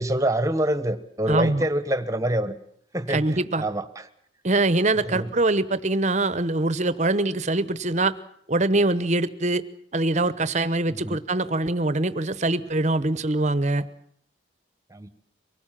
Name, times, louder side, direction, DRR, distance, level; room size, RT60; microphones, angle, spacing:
voice 1, 0.0-2.5 2.9-4.1 5.1-5.3 10.9-11.2 14.9-15.1, right 1 dB, 15° right, 11 dB, 1.2 m, -26 dB
voice 2, 1.3-1.7 3.1-3.6 4.4-8.1 8.5-9.6 9.9-13.8, right 2 dB, 35° right, 15 dB, 0.9 m, -23 dB
24.0 x 18.5 x 7.5 m, 0.67 s
head